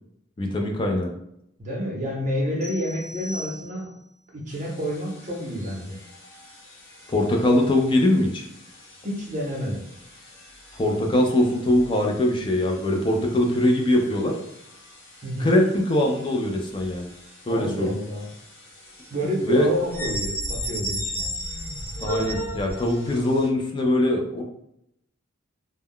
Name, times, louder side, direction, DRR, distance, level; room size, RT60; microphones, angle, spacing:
voice 1, 0.4-1.1 7.1-8.4 10.7-14.4 15.4-17.1 17.5-17.9 19.4-19.7 22.0-24.4, left 1 dB, 25° left, 2 dB, 0.3 m, -22 dB
voice 2, 1.6-3.9 4.3-6.0 9.0-9.8 15.2-15.5 17.5-18.3 19.1-21.3, equal, 35° right, -2 dB, 0.7 m, -29 dB
sound 1, 2.6-4.1, left 1 dB, 5° left, 0.8 m, -39 dB
sound 2, 4.5-23.5, equal, 65° left, 0.7 m, -38 dB
2.2 x 2.1 x 3.5 m, 0.78 s
head